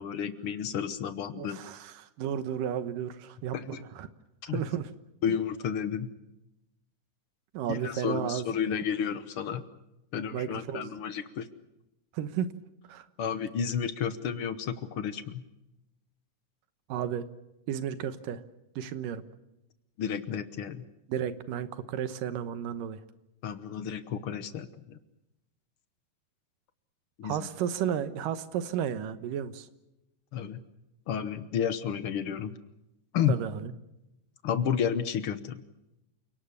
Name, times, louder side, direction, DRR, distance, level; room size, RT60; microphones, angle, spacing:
voice 1, 0.0-1.6 3.5-3.8 4.4-4.6 5.2-6.1 7.7-9.6 10.1-11.5 13.2-15.4 20.0-20.8 23.4-25.0 27.2-27.5 30.3-30.6 31.1-32.6 33.1-33.4 34.4-35.6, left 8 dB, 60° left, 12 dB, 1.5 m, -31 dB
voice 2, 1.3-4.1 4.5-4.9 7.5-8.4 10.3-10.9 12.1-12.5 12.9-13.1 16.9-17.3 17.7-18.4 18.8-19.2 21.1-23.0 27.2-29.7 33.3-33.7, right 9 dB, 85° right, 12 dB, 2.8 m, -33 dB
29.0 x 18.5 x 7.1 m, 0.92 s
omnidirectional pair, 3.8 m